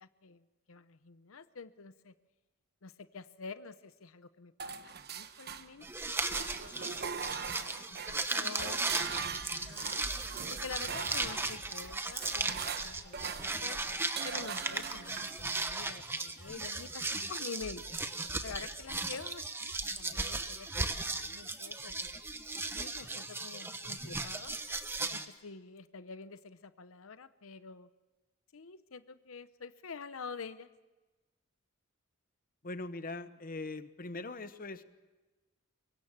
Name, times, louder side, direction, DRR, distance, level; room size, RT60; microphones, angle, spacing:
voice 1, 0.0-2.1 2.8-6.0 6.6-7.5 8.1-10.0 10.5-13.8 14.2-17.8 18.4-22.2 22.7-24.5 25.1-27.9 28.5-30.7, left 5 dB, 80° left, 13 dB, 0.8 m, -47 dB
sound 1, 4.6-5.9 6.2-15.7, right 7 dB, 50° right, 1.1 m, -42 dB
sound 2, 5.8-25.2, right 3 dB, 10° right, 1.1 m, -37 dB
voice 2, 32.6-34.8, left 2 dB, 45° left, 12 dB, 1.0 m, -41 dB
24.5 x 22.5 x 7.3 m, 1.2 s
head